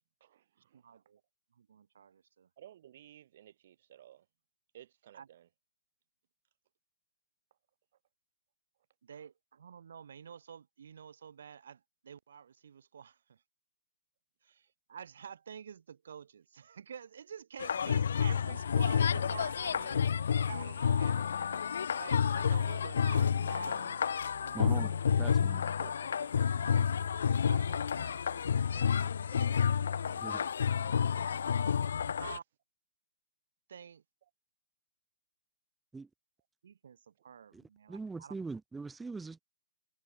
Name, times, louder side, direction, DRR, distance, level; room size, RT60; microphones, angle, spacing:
voice 1, 0.2-1.0 2.6-4.3 4.7-5.5 9.1-9.3 25.8-26.4, right 11 dB, 55° right, 4.0 m, -56 dB
voice 2, 0.7-1.2 1.5-2.5 5.1-5.3 9.0-13.4 14.4-20.0 20.4-25.0 26.2-26.3 26.6-26.9 27.3-29.6 32.2-32.4 33.7-34.0 36.6-38.4, right 7 dB, 70° right, 5.8 m, -49 dB
sound 1, 17.6-32.4, left 7 dB, 75° left, 0.5 m, -30 dB
voice 3, 24.5-24.9 25.2-25.8 30.1-30.5 35.9-36.1 37.5-39.4, right 4 dB, 5° right, 1.6 m, -42 dB
hypercardioid pair, 150°, 0 cm